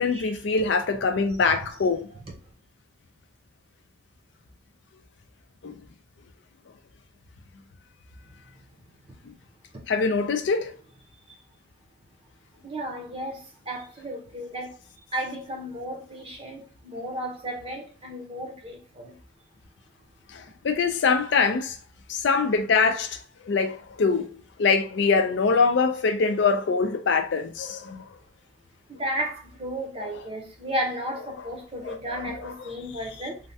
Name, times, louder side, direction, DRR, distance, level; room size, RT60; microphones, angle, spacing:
voice 1, 0.0-2.1 5.6-5.8 9.9-10.7 20.3-21.8 22.1-23.2 23.5-28.1 31.8-32.5, left 4 dB, 65° left, 0.4 m, -24 dB
voice 2, 12.6-14.8 15.1-19.1 28.9-33.4, right 1 dB, 30° right, 0.7 m, -34 dB
3.2 x 2.2 x 2.6 m
head